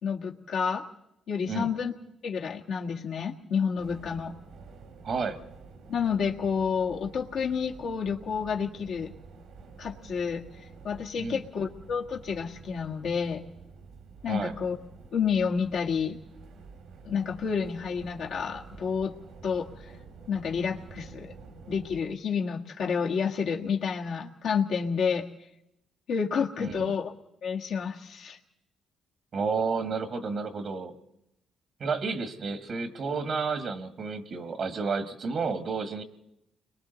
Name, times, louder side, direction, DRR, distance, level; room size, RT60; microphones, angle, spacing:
voice 1, 0.0-0.8 1.3-1.9 2.2-4.3 5.9-9.1 9.8-13.4 14.2-14.8 15.1-16.2 17.0-19.1 19.4-19.9 20.3-21.3 21.7-25.3 26.1-27.1 27.4-28.4, left 6 dB, 70° left, -1 dB, 1.5 m, -29 dB
sound 1, 3.8-22.0, right 4 dB, 80° right, 2.5 m, -49 dB
voice 2, 5.0-5.4 11.2-11.4 14.3-14.5 26.6-26.9 29.3-30.9 31.8-36.0, right 4 dB, 55° right, 10 dB, 1.5 m, -31 dB
30.0 x 22.5 x 4.0 m, 0.84 s
cardioid pair, 90°, 0 cm